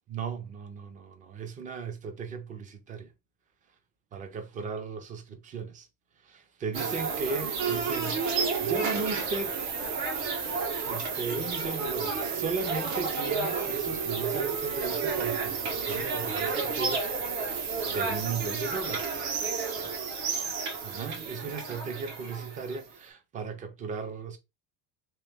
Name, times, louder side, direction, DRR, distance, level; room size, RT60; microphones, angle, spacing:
voice 1, 0.1-3.1 4.1-5.9 6.2-9.6 10.9-17.6 17.9-19.3 20.8-24.4, right 5 dB, 20° right, 0.4 m, -36 dB
sound 1, 6.7-22.8, right 5 dB, 80° right, 1.4 m, -31 dB
3.3 x 3.0 x 3.4 m
cardioid pair, 170°, 41 cm